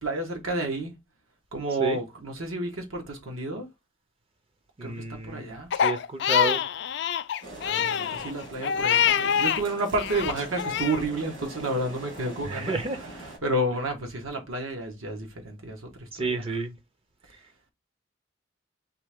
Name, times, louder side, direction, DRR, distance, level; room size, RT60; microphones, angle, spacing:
voice 1, 0.0-0.9 1.5-3.7 4.8-5.7 7.5-12.8 13.4-16.4, right 2 dB, 85° right, 1.3 m, -31 dB
voice 2, 4.8-6.7 12.4-13.0 16.1-16.7, right 3 dB, 25° right, 0.5 m, -31 dB
Crying sobbing, 5.7-9.6 10.0-11.0, left 9 dB, 55° left, 0.3 m, -25 dB
sound 1, 7.4-13.4, right 1 dB, 65° right, 2.2 m, -43 dB
4.4 x 3.3 x 3.5 m
head